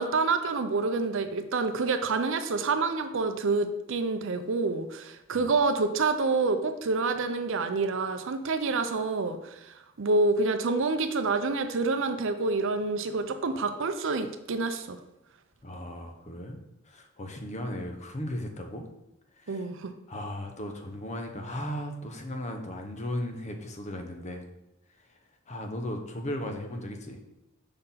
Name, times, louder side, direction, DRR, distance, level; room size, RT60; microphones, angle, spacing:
voice 1, 0.0-15.0 19.5-19.9, right 3 dB, 60° right, 8 dB, 0.6 m, -28 dB
voice 2, 15.6-16.6 16.9-18.9 19.4-19.7 20.1-24.4 25.5-27.2, left 1 dB, 35° left, 4 dB, 0.8 m, -36 dB
5.3 x 4.3 x 5.6 m, 0.89 s
head